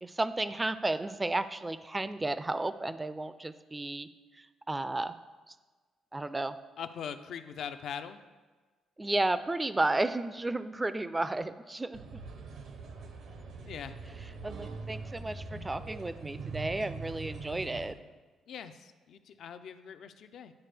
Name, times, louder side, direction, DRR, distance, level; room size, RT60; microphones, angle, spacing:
voice 1, 0.0-4.1 4.3-5.1 5.5-5.6 6.1-6.6 9.0-12.2 14.4-17.9, right 2 dB, 15° right, 13 dB, 0.3 m, -33 dB
voice 2, 6.8-8.2 13.6-14.0 18.5-20.5, left 8 dB, 70° left, 10 dB, 0.4 m, -41 dB
sound 1, 11.9-17.9, right 4 dB, 75° right, 0.8 m, -42 dB
10.5 x 4.2 x 3.4 m, 1.3 s
cardioid pair, 90°, 0 cm